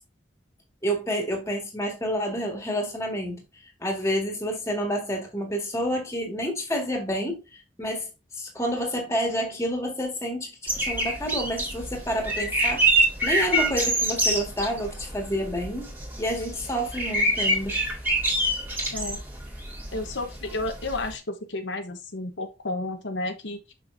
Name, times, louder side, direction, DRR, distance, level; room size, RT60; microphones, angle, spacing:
voice 1, 0.8-3.4 3.8-7.4 7.8-8.1 8.3-10.5 10.8-12.9 13.2-15.9 16.2-17.8, equal, 15° left, 1.9 m, -29 dB
sound 1, 10.7-21.1, right 1 dB, 10° right, 2.1 m, -26 dB
voice 2, 19.9-23.7, left 2 dB, 80° left, 1.0 m, -32 dB
6.3 x 6.0 x 2.6 m
head